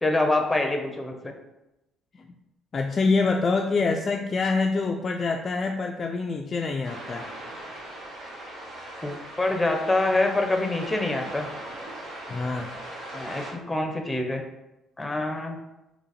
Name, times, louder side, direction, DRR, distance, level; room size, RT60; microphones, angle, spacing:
voice 1, 0.0-1.3 9.0-11.5 13.1-14.4 15.0-15.6, left 2 dB, 10° left, 3 dB, 0.7 m, -25 dB
voice 2, 2.7-7.3 12.3-12.8, left 4 dB, 35° left, 3 dB, 0.3 m, -26 dB
sound 1, 6.8-13.5, right 1 dB, 70° right, 1.4 m, -39 dB
3.9 x 2.9 x 4.1 m, 0.94 s
cardioid pair, 110°, 0 cm